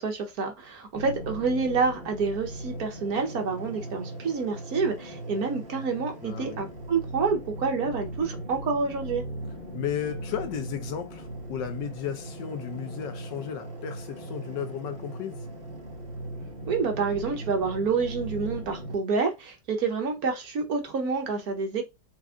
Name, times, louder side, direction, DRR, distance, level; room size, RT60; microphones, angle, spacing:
voice 1, 0.0-9.2 16.7-21.8, right 4 dB, 60° right, 1.4 m, -28 dB
sound 1, 0.9-18.9, right 1 dB, 40° right, 1.0 m, -38 dB
voice 2, 6.2-6.6 9.7-15.4, left 9 dB, 85° left, 1.5 m, -34 dB
4.8 x 2.6 x 3.7 m
omnidirectional pair, 1.9 m